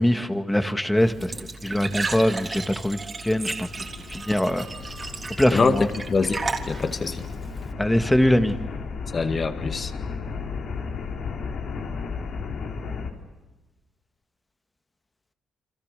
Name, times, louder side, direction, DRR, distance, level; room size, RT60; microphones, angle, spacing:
voice 1, 0.0-1.3 1.6-3.7 4.1-4.6 5.4-5.9 7.8-8.5, left 1 dB, 5° left, 8 dB, 2.1 m, -22 dB
Glass / Trickle dribble / Fill (with liquid), 1.0-7.7, right 3 dB, 30° right, 3.5 m, -34 dB
sound 1, 3.6-13.1, left 5 dB, 65° left, 4.3 m, -34 dB
voice 2, 5.5-7.3 9.1-9.9, left 4 dB, 40° left, 8 dB, 2.1 m, -24 dB
29.5 x 25.5 x 6.9 m, 1.2 s
cardioid pair, 90°, 0 cm